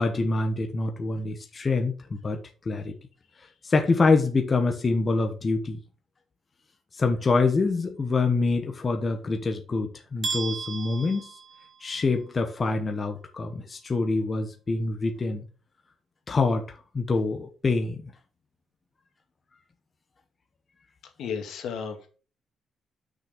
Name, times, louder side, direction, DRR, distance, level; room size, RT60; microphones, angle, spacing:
voice 1, 0.0-2.4 2.6-2.9 3.6-5.8 7.0-11.3 11.8-15.4 16.3-18.1, left 3 dB, 25° left, 1.2 m, -25 dB
sound 1, 10.2-12.2, right 4 dB, 45° right, 2.0 m, -35 dB
voice 2, 21.2-22.1, left 6 dB, 80° left, 2.1 m, -33 dB
6.6 x 5.9 x 5.1 m
cardioid pair, 155°, 0 cm